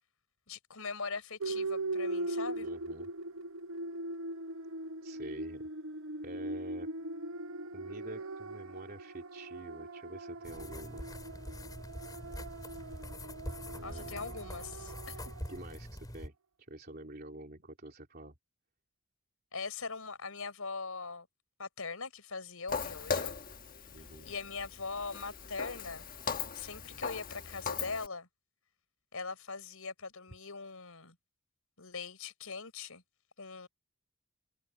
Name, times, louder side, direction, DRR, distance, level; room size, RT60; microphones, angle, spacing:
voice 1, 0.5-2.7 13.8-15.3 19.5-21.3 21.6-23.3 24.2-26.1 26.5-28.3 29.1-31.2 31.8-33.0 33.4-33.7, left 4 dB, 90° left, 4.8 m, -41 dB
sound 1, 1.4-15.6, right 2 dB, 70° right, 0.9 m, -40 dB
voice 2, 2.6-3.1 5.0-5.6 6.2-6.9 7.7-11.1 13.6-14.3 15.5-16.3 16.6-18.3 23.9-24.3, right 1 dB, 45° right, 3.4 m, -47 dB
sound 2, 10.4-16.3, left 1 dB, 20° left, 4.4 m, -44 dB
Walk footsteps, 22.7-28.1, left 5 dB, 40° left, 1.4 m, -39 dB
head